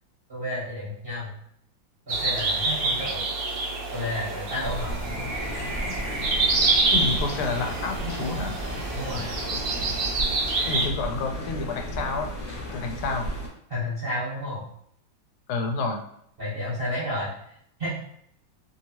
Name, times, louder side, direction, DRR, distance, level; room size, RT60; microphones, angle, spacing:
voice 1, 0.3-1.3 2.1-3.2 3.9-4.9 8.9-9.3 13.7-14.7 16.4-17.3 17.8-17.9, left 1 dB, 35° right, -9 dB, 1.0 m, -31 dB
sound 1, 2.1-10.9, right 3 dB, 65° right, 1.1 m, -27 dB
sound 2, 4.6-13.5, equal, 55° left, 0.9 m, -34 dB
voice 2, 6.9-8.6 10.7-12.3 12.7-13.3 15.5-16.0, left 3 dB, 85° left, 3 dB, 1.4 m, -29 dB
3.2 x 2.7 x 2.8 m, 0.69 s
omnidirectional pair, 2.3 m